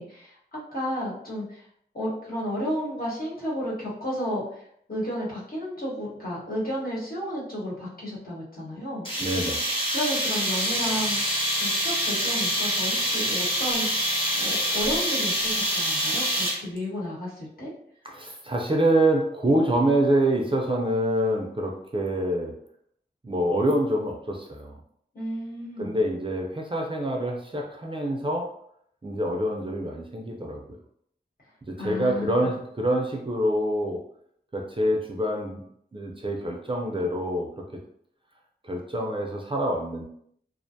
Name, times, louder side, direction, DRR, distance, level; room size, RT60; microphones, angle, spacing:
voice 1, 0.0-1.6 1.9-9.1 9.9-17.7 25.1-26.0 31.8-32.5, equal, 55° left, -7 dB, 1.1 m, -32 dB
sound 1, 9.0-16.8, equal, 30° left, 1.0 m, -26 dB
voice 2, 9.2-9.6 18.0-22.5 23.2-24.8 25.8-28.5 29.0-30.6 31.7-34.0 34.5-35.6 35.9-37.6 38.6-40.0, right 1 dB, 30° right, 0 dB, 0.4 m, -26 dB
2.4 x 2.1 x 2.7 m, 0.70 s
wide cardioid pair, 65°, 18 cm